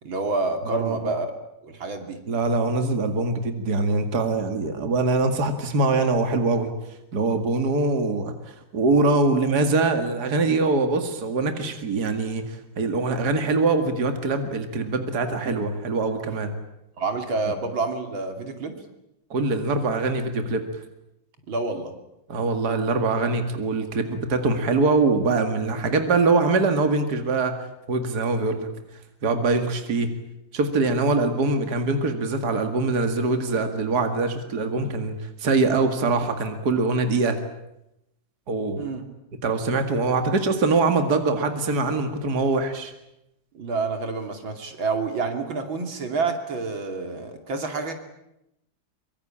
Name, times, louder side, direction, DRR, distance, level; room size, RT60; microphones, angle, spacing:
voice 1, 0.0-1.3 1.6-2.2 17.0-18.8 21.5-21.9 38.8-39.0 43.5-47.9, right 3 dB, 85° right, 6 dB, 3.5 m, -28 dB
voice 2, 0.7-1.1 2.3-6.7 7.1-16.5 19.3-20.6 22.3-27.5 27.9-28.7 29.2-30.1 30.5-37.4 38.5-38.9 39.4-42.9, right 3 dB, 55° right, 7 dB, 2.6 m, -23 dB
24.0 x 23.5 x 8.8 m, 0.85 s
omnidirectional pair, 2.1 m